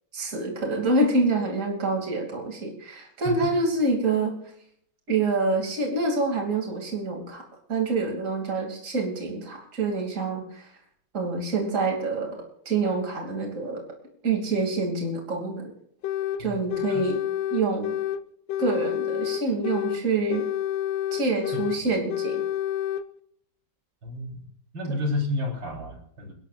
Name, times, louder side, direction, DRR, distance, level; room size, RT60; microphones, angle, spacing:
voice 1, 0.1-4.3 5.1-7.4 7.7-10.7 11.1-13.8 14.2-15.7 16.4-17.2 17.5-18.0 18.6-20.5 21.1-22.5, right 3 dB, 40° right, 0 dB, 3.1 m, -26 dB
sound 1, 16.0-16.4 16.7-18.2 18.5-20.0 20.3-21.8 22.1-23.0, left 11 dB, 90° left, 1.5 m, -28 dB
voice 2, 24.0-24.4 24.7-26.3, left 2 dB, 85° right, 0 dB, 4.5 m, -30 dB
29.5 x 12.0 x 2.5 m, 0.68 s
omnidirectional pair, 2.0 m